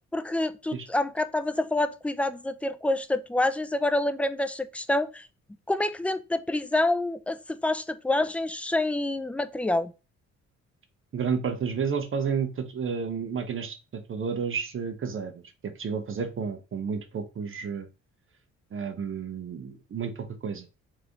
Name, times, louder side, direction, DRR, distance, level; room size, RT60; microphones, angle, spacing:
voice 1, 0.1-5.3 5.7-9.9, left 2 dB, 5° left, 0.3 m, -27 dB
voice 2, 11.1-17.9 18.7-20.7, right 6 dB, 45° right, 0.8 m, -31 dB
3.5 x 3.4 x 3.8 m
cardioid pair, 90°, 30 cm